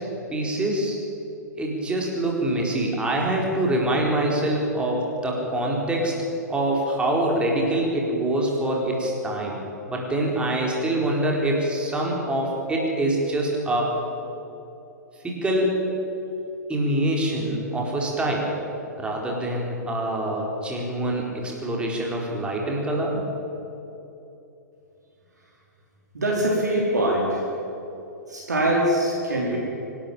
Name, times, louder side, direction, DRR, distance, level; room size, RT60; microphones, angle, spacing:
voice 1, 0.3-1.0 1.6-6.1 6.5-9.6 9.9-13.9 15.2-15.8 16.7-18.5 19.0-23.2, right 1 dB, 10° right, -1 dB, 4.4 m, -25 dB
voice 2, 26.1-27.4 28.3-29.6, right 1 dB, 70° right, -3 dB, 4.4 m, -23 dB
24.5 x 12.5 x 9.1 m, 2.9 s
figure-of-eight pair, 110°, 10 cm